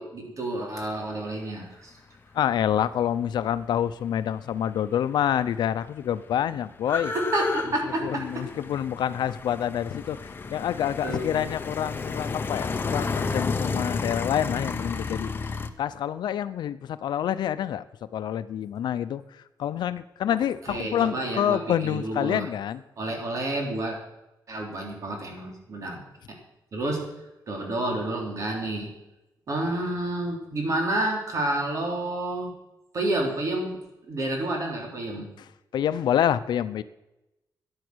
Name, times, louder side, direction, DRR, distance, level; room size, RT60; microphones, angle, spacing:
voice 1, 0.0-1.9 6.9-8.5 11.0-11.5 20.3-20.4 20.7-22.5 23.0-24.0 24.5-26.0 26.3-26.4 26.7-27.1 27.5-28.9 29.5-32.5 32.9-35.3, right 1 dB, 45° right, 1 dB, 3.8 m, -29 dB
voice 2, 2.3-7.1 8.0-15.3 15.8-17.8 18.1-22.8 35.7-36.8, left 10 dB, 85° left, 13 dB, 0.7 m, -27 dB
sound 1, 5.0-5.1 5.3-15.7, left 4 dB, 30° left, 0.9 m, -32 dB
14.0 x 10.5 x 6.3 m, 0.94 s
wide cardioid pair, 150°, 7 cm